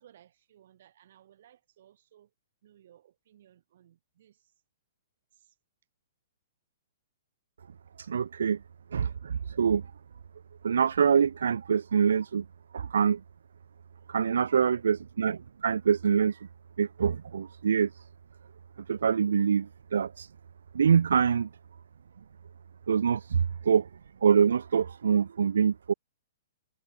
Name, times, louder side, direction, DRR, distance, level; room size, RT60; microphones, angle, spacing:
voice 1, 0.0-2.3 2.6-4.5 5.3-5.6 13.9-14.2 22.6-22.9, right 11 dB, 60° right, 6.6 m, -60 dB
voice 2, 8.0-8.6 8.9-9.8 10.6-12.4 12.7-13.2 14.1-16.5 16.8-17.9 18.9-20.3 20.7-21.5 22.9-23.9 24.2-25.9, right 7 dB, 85° right, 0.3 m, -25 dB
hypercardioid pair, 140°, 0 cm